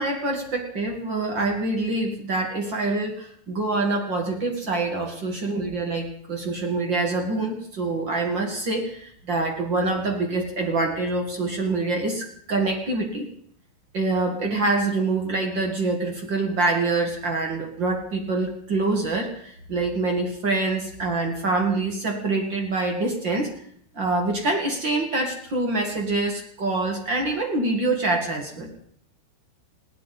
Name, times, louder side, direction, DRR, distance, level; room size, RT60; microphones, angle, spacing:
voice 1, 0.0-13.3 13.9-23.5 23.9-28.7, right 2 dB, 40° right, 2 dB, 1.7 m, -25 dB
21.0 x 16.5 x 4.1 m, 0.65 s
omnidirectional pair, 4.8 m